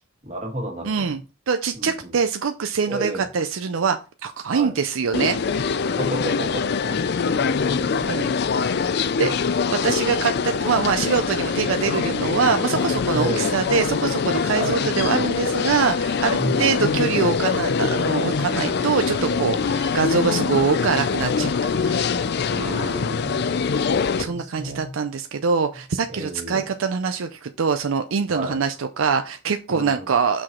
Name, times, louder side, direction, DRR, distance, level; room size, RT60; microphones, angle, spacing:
voice 1, 0.2-1.2 1.7-2.1 2.9-3.3 4.5-4.7 5.9-8.4 9.2-9.3 13.1-13.6 14.6-14.8 16.4-16.8 18.8-19.8 22.5-23.5 24.2-24.9 26.1-26.7 28.3-28.6 29.7-30.1, right 1 dB, 35° right, 1 dB, 2.1 m, -32 dB
voice 2, 0.8-1.2 1.5-5.7 8.1-8.3 8.7-8.9 9.2-9.3 9.7-22.0 24.2-30.4, right 5 dB, 75° right, 7 dB, 0.5 m, -24 dB
sound 1, 5.1-24.2, left 5 dB, 50° left, 0.4 m, -23 dB
6.2 x 4.8 x 4.4 m, 0.31 s
head